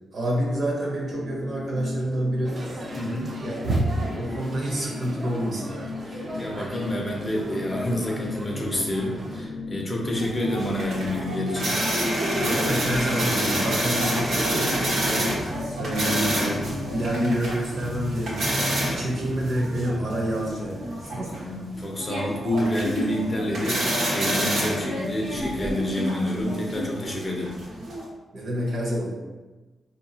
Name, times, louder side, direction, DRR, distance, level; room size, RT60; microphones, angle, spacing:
voice 1, 0.1-2.6 3.4-3.6 3.9-5.7 12.4-15.5 15.8-21.3 28.3-29.1, equal, 55° right, -2 dB, 1.0 m, -28 dB
sound 1, 1.1-17.4, left 2 dB, 75° left, 0.5 m, -36 dB
sound 2, 2.4-9.4, right 1 dB, 40° right, 0.5 m, -33 dB
voice 2, 3.0-3.3 6.0-11.8 21.3-27.5, left 1 dB, 25° left, 0 dB, 0.6 m, -28 dB
sound 3, 10.2-28.0, right 1 dB, 75° right, 1.1 m, -28 dB
4.8 x 2.7 x 2.7 m, 1.2 s
wide cardioid pair, 135°, 0 cm